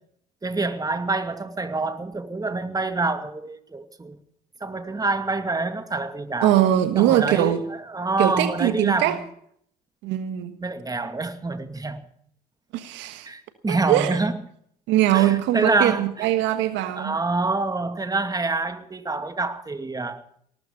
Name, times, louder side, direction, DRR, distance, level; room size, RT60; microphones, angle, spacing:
voice 1, 0.4-4.2 4.6-6.6 7.0-9.2 10.6-12.0 13.3-14.4 15.1-16.3 16.9-20.2, right 3 dB, 20° right, 2.5 m, -26 dB
voice 2, 6.4-7.6 8.2-9.2 10.0-10.5 12.7-13.3 13.7-14.2 14.9-17.1, right 13 dB, 75° right, 1.5 m, -21 dB
18.5 x 14.0 x 5.2 m
hypercardioid pair, 65°, 19 cm